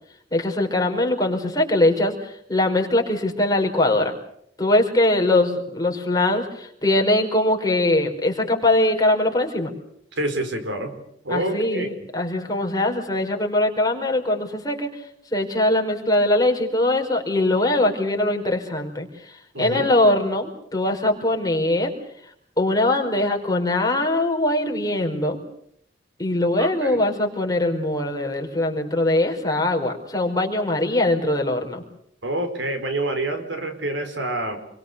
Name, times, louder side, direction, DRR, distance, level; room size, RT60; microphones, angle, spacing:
voice 1, 0.3-4.1 4.6-9.7 11.3-14.9 15.3-21.9 22.6-25.4 26.2-31.8, left 1 dB, 20° left, 1 dB, 5.0 m, -22 dB
voice 2, 10.2-11.0 11.2-11.9 19.5-19.9 26.6-27.1 32.2-34.6, right 1 dB, 90° right, 7 dB, 4.8 m, -27 dB
28.5 x 23.5 x 6.9 m, 0.70 s
head